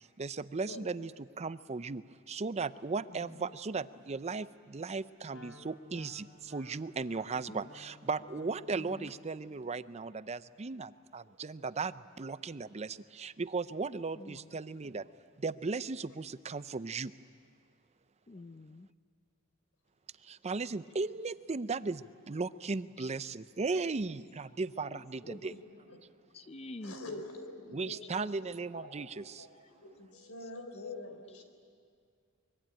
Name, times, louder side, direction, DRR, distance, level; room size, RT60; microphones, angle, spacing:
voice 1, 0.2-15.1 15.4-17.1 20.2-25.5 27.7-29.5, right 4 dB, 30° right, 15 dB, 0.5 m, -37 dB
voice 2, 3.1-3.5 7.5-7.7 8.7-9.1 14.2-14.6 18.3-18.9 23.0-23.1 24.8-25.5 26.3-27.2 27.6-28.0 30.1-30.7 31.1-31.2, left 2 dB, 30° left, 13 dB, 0.6 m, -49 dB
Wind instrument woodwind instrument, 5.3-9.3, left 1 dB, 70° left, 3.4 m, -55 dB
voice 3, 26.8-29.5 29.7-31.4, left 2 dB, 90° left, 6 dB, 3.8 m, -46 dB
24.5 x 22.5 x 8.9 m, 2.2 s
head